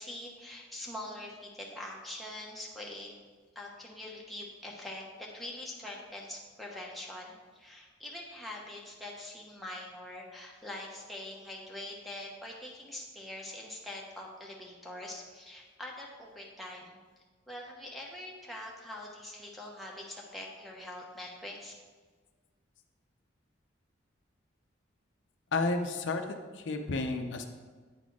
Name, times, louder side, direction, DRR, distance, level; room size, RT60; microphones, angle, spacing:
voice 1, 0.0-3.1 3.5-17.0 17.5-21.7, left 1 dB, ahead, -3 dB, 0.9 m, -44 dB
voice 2, 25.5-27.4, left 3 dB, 65° left, 5 dB, 0.5 m, -32 dB
9.0 x 4.1 x 4.8 m, 1.4 s
head